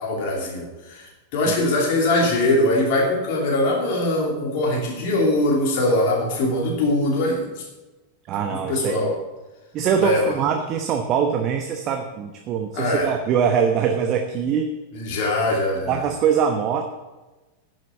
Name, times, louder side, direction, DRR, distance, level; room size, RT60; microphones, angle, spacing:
voice 1, 0.0-7.5 8.7-9.1 10.0-10.3 12.7-13.1 14.9-15.9, left 1 dB, 45° left, -1 dB, 2.8 m, -22 dB
voice 2, 8.3-9.1 9.7-14.7 15.9-16.8, right 7 dB, 35° right, 5 dB, 1.0 m, -23 dB
10.5 x 7.8 x 7.0 m, 1.2 s
figure-of-eight pair, 90°, 0 cm